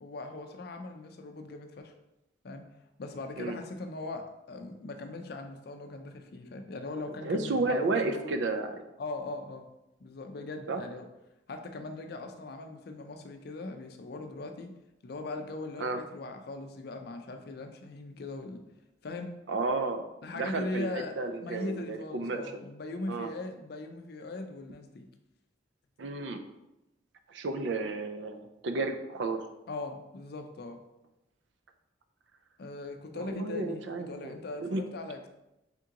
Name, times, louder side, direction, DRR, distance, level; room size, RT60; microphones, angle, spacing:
voice 1, 0.0-1.9 2.4-2.7 3.0-8.3 9.0-9.7 10.0-11.1 11.5-14.7 15.0-18.6 19.0-19.3 20.2-21.1 21.4-25.1 29.7-30.8 32.6-35.3, left 2 dB, 55° left, 5 dB, 0.4 m, -40 dB
voice 2, 7.2-8.8 10.7-10.8 15.8-16.0 19.5-20.0 20.3-22.4 23.1-23.3 26.0-26.4 27.3-29.4 33.1-34.8, right 3 dB, 70° right, 7 dB, 0.4 m, -32 dB
3.6 x 2.8 x 3.7 m, 0.91 s
head